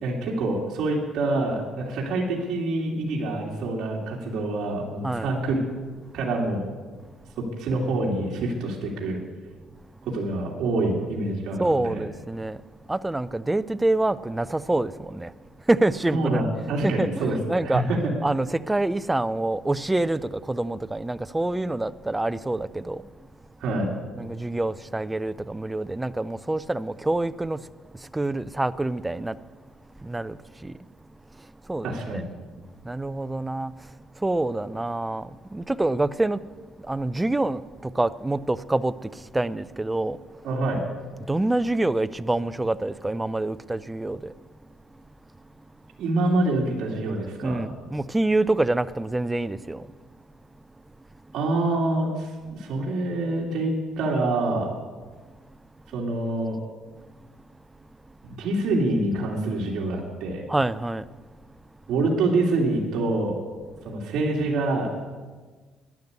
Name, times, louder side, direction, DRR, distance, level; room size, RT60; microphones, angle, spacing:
voice 1, 0.0-5.6 6.1-6.7 7.4-9.2 10.1-12.0 16.1-18.1 23.6-23.9 31.8-32.3 40.4-40.8 46.0-47.6 51.3-54.7 55.9-56.6 58.2-60.4 61.9-63.4 63.8-64.9, right 2 dB, 65° right, 2.7 m, -26 dB
voice 2, 11.6-12.6 12.9-15.3 15.6-23.1 24.2-29.4 30.0-30.9 31.3-32.2 32.8-40.5 41.3-44.3 47.4-50.0 57.2-57.3 58.1-58.2 60.5-61.1 61.4-61.5 63.9-64.0, right 2 dB, 10° right, 0.4 m, -27 dB
12.0 x 11.0 x 8.2 m
cardioid pair, 145°, 0 cm